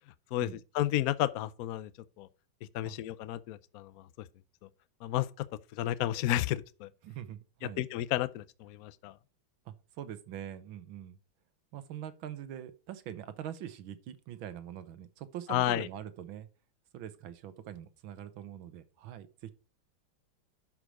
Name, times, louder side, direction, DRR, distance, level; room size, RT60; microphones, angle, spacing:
voice 1, 0.3-1.9 2.2-2.3 2.7-3.9 5.0-5.3 5.7-6.9 7.8-9.1 15.5-15.9, left 13 dB, 90° left, 0.7 m, -31 dB
voice 2, 7.0-7.8 9.7-11.2 11.7-16.5 16.9-19.5, right 10 dB, 75° right, 1.7 m, -43 dB
11.5 x 4.8 x 4.8 m
omnidirectional pair, 2.2 m